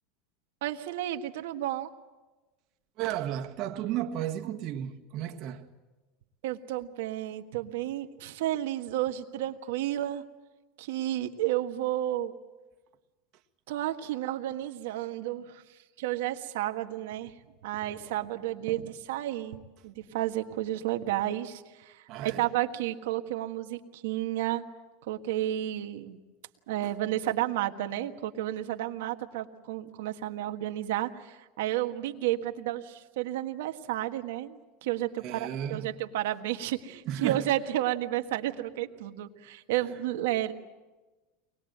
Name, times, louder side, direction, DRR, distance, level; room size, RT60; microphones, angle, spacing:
voice 1, 0.6-1.9 6.4-10.2 10.8-12.3 13.7-17.4 17.6-24.6 25.0-26.2 26.7-40.5, right 14 dB, 80° right, 1.5 m, -32 dB
voice 2, 3.0-5.7 22.1-22.5 35.2-36.0 37.1-37.5, right 11 dB, 50° right, 1.7 m, -33 dB
24.0 x 20.5 x 8.0 m
supercardioid pair, 120°, 0 cm